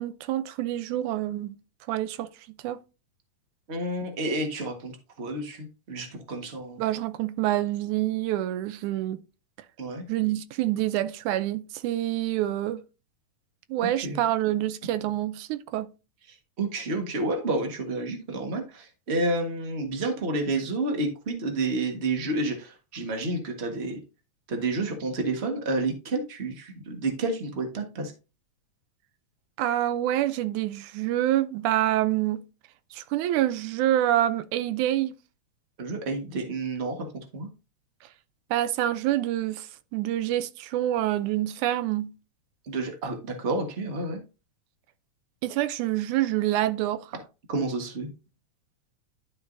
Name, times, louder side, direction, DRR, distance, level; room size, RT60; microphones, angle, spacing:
voice 1, 0.0-1.6 1.9-2.3 2.6-2.8 6.8-9.2 10.1-12.8 13.7-15.9 29.6-32.4 32.9-35.2 38.5-42.1 45.4-47.2, right 13 dB, 85° right, 2.1 m, -27 dB
voice 2, 3.7-6.8 9.8-10.0 13.8-14.2 16.6-24.0 24.5-28.1 35.8-37.5 42.7-44.2 47.5-48.1, right 2 dB, 35° right, 1.1 m, -30 dB
11.5 x 5.9 x 2.6 m
omnidirectional pair, 3.4 m